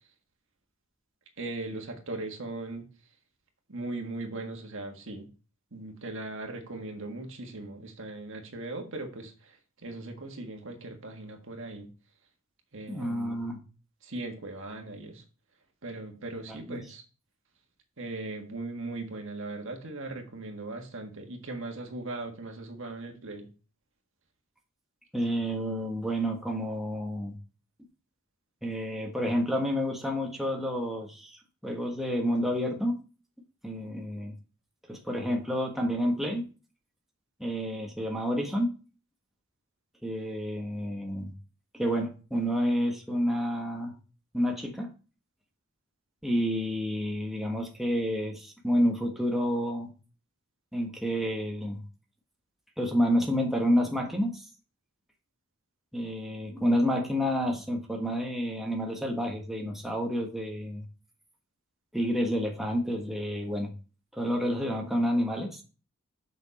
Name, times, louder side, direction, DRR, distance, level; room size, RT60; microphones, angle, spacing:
voice 1, 1.4-2.8 3.7-5.3 5.7-9.6 9.8-11.9 12.7-13.3 14.0-15.2 15.8-17.0 18.0-23.5, right 2 dB, 65° right, 4 dB, 1.6 m, -39 dB
voice 2, 12.9-13.6 16.5-16.8 25.1-27.4 28.6-33.0 33.6-34.3 34.9-36.5 37.4-38.7 40.0-41.3 41.7-43.9 44.3-44.9 46.2-49.9 50.7-51.8 52.8-54.5 55.9-60.8 61.9-63.7 64.1-65.6, equal, ahead, 0 dB, 1.3 m, -29 dB
7.0 x 6.0 x 4.2 m, 0.35 s
head